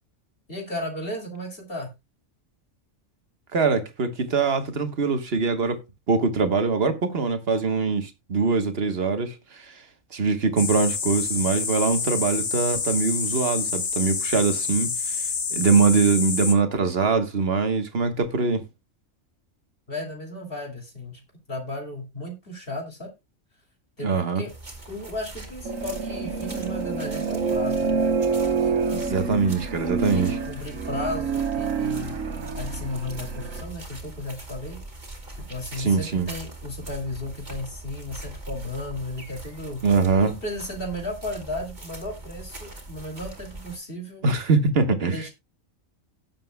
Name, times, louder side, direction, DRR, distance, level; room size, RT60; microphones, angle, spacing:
voice 1, 0.5-1.9 19.9-21.2 21.5-23.1 24.0-24.5 24.9-28.0 28.6-28.7 29.4-29.6 30.1-32.2 32.5-34.8 35.5-39.8 40.3-44.3 45.1-45.3, left 1 dB, 45° left, 2.8 m, -34 dB
voice 2, 3.5-5.8 6.1-9.7 10.1-15.2 15.5-18.6 24.0-24.4 28.9-30.4 35.8-36.3 39.8-40.3 44.2-45.2, right 4 dB, 50° right, 1.5 m, -23 dB
sound 1, 10.6-16.5, left 5 dB, 75° left, 1.8 m, -28 dB
sound 2, 24.5-43.8, right 2 dB, 35° right, 2.5 m, -41 dB
sound 3, 25.6-33.6, right 5 dB, 80° right, 1.5 m, -27 dB
17.0 x 7.5 x 2.2 m
omnidirectional pair, 1.4 m